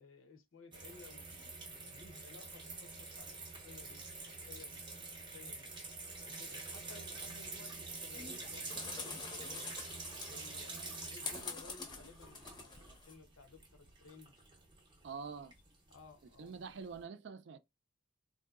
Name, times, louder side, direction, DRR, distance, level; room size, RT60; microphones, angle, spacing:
voice 1, 0.0-5.7 6.2-9.7 10.2-14.3 15.2-15.4 15.9-16.7, left 4 dB, 85° left, 0.8 m, -58 dB
sound 1, 0.7-17.0, right 3 dB, 25° right, 0.7 m, -47 dB
sound 2, 8.1-13.1, left 4 dB, 20° left, 0.6 m, -47 dB
voice 2, 15.0-15.5 16.4-17.6, right 5 dB, 60° right, 0.4 m, -45 dB
3.6 x 2.7 x 2.4 m
head